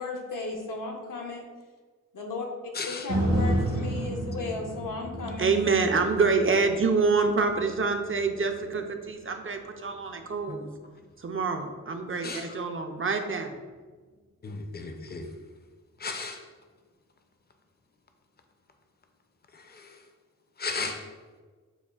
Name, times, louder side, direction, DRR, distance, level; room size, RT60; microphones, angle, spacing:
voice 1, 0.0-1.4 2.1-2.5 2.8-5.5, left 3 dB, 75° left, 1 dB, 0.7 m, -35 dB
voice 2, 2.7-3.1 10.5-10.6 12.2-12.5 14.4-15.3 16.0-16.4 19.5-19.9 20.6-21.0, left 4 dB, 30° left, 5 dB, 0.4 m, -35 dB
sound 1, 3.1-11.2 11.7-11.8, right 1 dB, 90° right, 1.2 m, -33 dB
voice 3, 5.4-10.7 11.2-13.5, right 4 dB, 40° right, 5 dB, 0.4 m, -26 dB
6.7 x 2.4 x 2.3 m, 1.4 s
wide cardioid pair, 65°, 33 cm